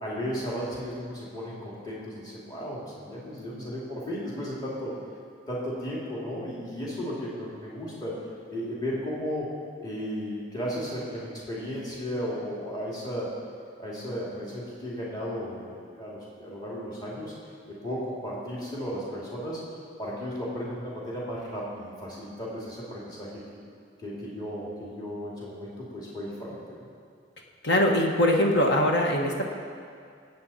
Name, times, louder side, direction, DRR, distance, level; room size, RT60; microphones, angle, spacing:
voice 1, 0.0-4.9 5.5-8.1 8.5-9.5 9.8-13.3 13.8-17.3 17.8-19.6 20.0-23.6 24.0-26.6, equal, 20° left, -6 dB, 2.6 m, -34 dB
voice 2, 27.6-29.4, left 1 dB, 60° left, 1 dB, 1.5 m, -22 dB
20.0 x 8.7 x 4.3 m, 2.3 s
head